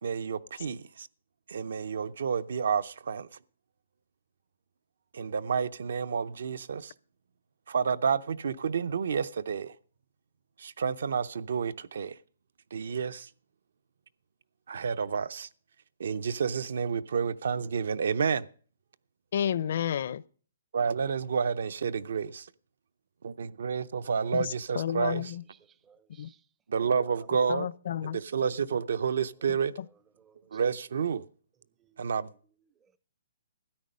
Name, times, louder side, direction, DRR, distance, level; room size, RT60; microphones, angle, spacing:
voice 1, 0.0-1.1 1.5-3.3 5.1-6.9 7.7-9.8 10.6-12.2 12.7-13.3 14.7-15.5 16.0-18.5 20.7-22.5 23.2-25.3 26.7-27.7 28.1-29.7 30.5-31.2 32.0-32.3, right 6 dB, 70° right, 0.6 m, -30 dB
voice 2, 19.3-20.2 24.3-25.4 26.2-26.3 27.5-28.2 29.8-29.9, left 9 dB, 50° left, 0.5 m, -31 dB
voice 3, 24.7-25.2 25.5-26.5 27.1-27.3 29.8-29.9 30.2-30.6 31.8-32.1 32.7-33.0, right 7 dB, 10° right, 0.5 m, -61 dB
13.0 x 9.4 x 5.4 m
hypercardioid pair, 170°, 0 cm